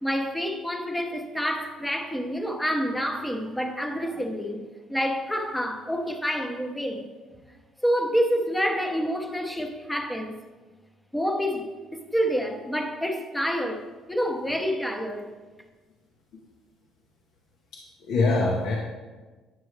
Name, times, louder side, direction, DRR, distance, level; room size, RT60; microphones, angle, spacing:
voice 1, 0.0-7.1 7.5-7.6 7.8-10.4 11.1-15.3, equal, 5° left, 0.7 m, -28 dB
voice 2, 17.7-18.8, left 3 dB, 70° left, 0.9 m, -24 dB
9.2 x 6.1 x 3.2 m
cardioid pair, 140°, 0 cm